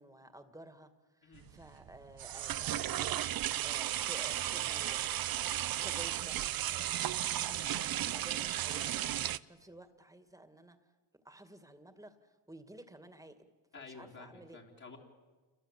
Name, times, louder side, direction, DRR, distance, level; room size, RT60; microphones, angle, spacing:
voice 1, 0.0-5.3 5.7-6.9 7.3-9.1 9.5-10.8 11.2-13.4 13.7-14.6, right 1 dB, 10° right, 9 dB, 2.3 m, -53 dB
sound 1, 1.4-9.4, right 12 dB, 55° right, 0.7 m, -35 dB
voice 2, 13.7-15.0, left 4 dB, 40° left, -3 dB, 3.6 m, -51 dB
29.0 x 22.5 x 8.4 m, 1.3 s
cardioid pair, 105°, 44 cm